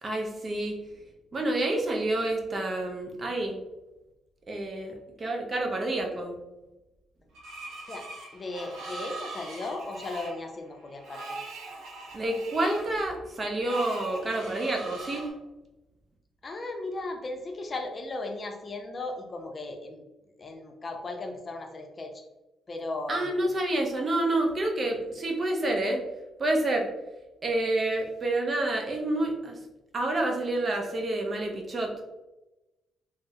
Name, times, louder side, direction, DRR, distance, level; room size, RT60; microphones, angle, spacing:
voice 1, 0.0-0.8 1.3-3.6 4.5-6.4 12.1-15.3 23.1-26.0 26.4-26.9 27.4-29.6 29.9-31.9, right 1 dB, 35° right, 2 dB, 0.6 m, -28 dB
Screech, 7.3-15.3, right 2 dB, 85° right, 0.8 m, -42 dB
voice 2, 8.3-11.4 16.4-20.0 20.4-22.1 22.7-23.3, left 2 dB, 35° left, 3 dB, 0.5 m, -36 dB
3.4 x 2.0 x 2.7 m, 1.0 s
cardioid pair, 90°, 0 cm